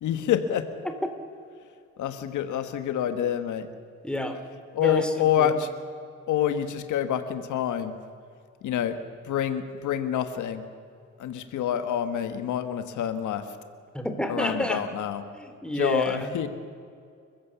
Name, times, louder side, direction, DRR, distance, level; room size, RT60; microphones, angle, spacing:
voice 1, 0.0-0.7 2.0-3.7 4.7-5.7 6.3-7.9 8.6-10.6 11.2-13.5 14.3-15.2 15.8-16.5, left 9 dB, 75° left, 10 dB, 1.5 m, -27 dB
voice 2, 4.0-4.4 4.8-5.5 13.9-14.8 15.3-16.3, left 1 dB, 5° left, 6 dB, 2.9 m, -29 dB
29.5 x 15.0 x 7.1 m, 2.3 s
cardioid pair, 90°, 30 cm